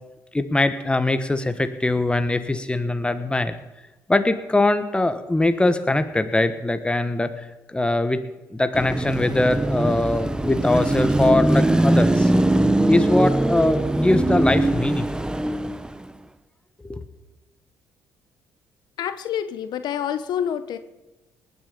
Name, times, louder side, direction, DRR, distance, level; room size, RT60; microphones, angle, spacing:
voice 1, 0.3-3.5 4.1-7.3 7.7-12.3 12.9-15.1 16.8-17.0, left 2 dB, 15° left, 10 dB, 1.3 m, -22 dB
Car passing by / Traffic noise roadway noise / Engine, 8.7-16.1, right 1 dB, 10° right, 0.8 m, -21 dB
voice 2, 19.0-20.8, left 9 dB, 65° left, 11 dB, 0.9 m, -27 dB
19.5 x 9.5 x 5.2 m, 1.0 s
hypercardioid pair, 55°, 8 cm